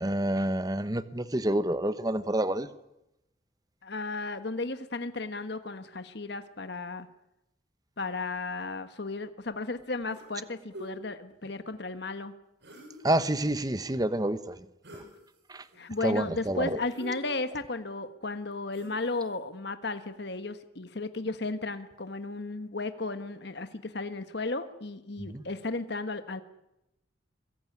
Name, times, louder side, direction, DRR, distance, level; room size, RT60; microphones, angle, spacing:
voice 1, 0.0-2.7 13.0-14.7 14.9-15.0 15.5-15.6 16.0-16.8 25.2-25.4, right 1 dB, 20° right, 1.0 m, -28 dB
voice 2, 3.8-7.1 8.0-12.3 15.8-26.4, left 3 dB, 55° left, 1.3 m, -34 dB
sound 1, 10.1-10.4 10.7-10.9 12.6-13.3 14.8-15.1 15.6-16.1 16.9-17.7 18.7-19.2, right 1 dB, 60° right, 7.6 m, -46 dB
22.0 x 22.0 x 9.7 m
head